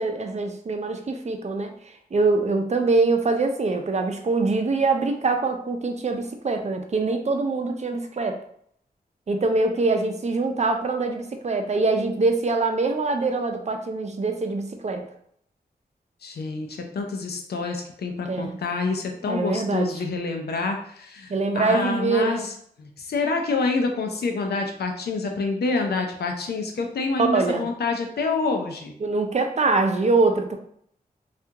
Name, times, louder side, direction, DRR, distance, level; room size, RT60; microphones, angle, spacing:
voice 1, 0.0-1.7 2.1-8.4 9.3-15.0 18.3-18.6 19.3-19.9 21.3-22.5 27.2-27.6 29.0-30.6, right 3 dB, 45° right, 5 dB, 0.5 m, -24 dB
voice 2, 16.2-22.5 22.8-28.9, left 3 dB, 85° left, 3 dB, 0.6 m, -27 dB
2.8 x 2.4 x 3.4 m, 0.68 s
cardioid pair, 65°, 16 cm